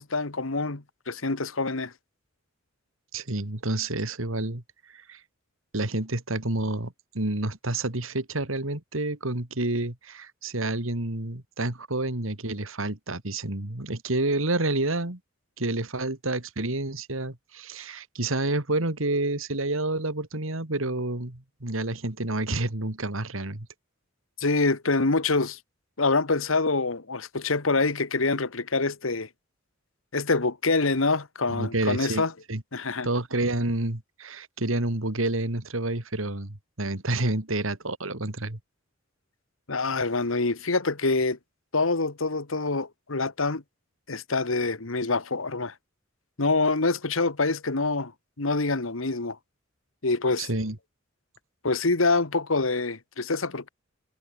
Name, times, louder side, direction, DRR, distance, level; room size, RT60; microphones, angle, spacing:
voice 1, 0.0-1.9 24.4-25.6 26.0-29.3 30.1-32.3 32.7-33.1 39.7-41.4 41.7-43.6 44.1-45.7 46.4-48.1 48.4-49.4 50.0-50.5 51.6-53.7, left 3 dB, 75° left, 1.7 m, -26 dB
voice 2, 3.1-4.6 4.9-5.2 5.7-15.2 15.6-23.7 31.5-32.2 32.5-32.6 33.0-38.6 50.4-50.8, right 2 dB, 75° right, 2.7 m, -29 dB
head